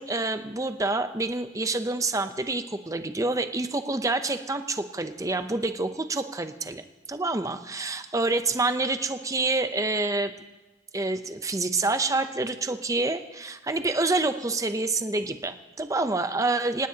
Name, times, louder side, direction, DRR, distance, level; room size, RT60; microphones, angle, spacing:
voice 1, 0.0-10.3 10.9-16.9, right 2 dB, 20° right, 9 dB, 0.7 m, -27 dB
25.5 x 18.5 x 2.9 m, 1.1 s
head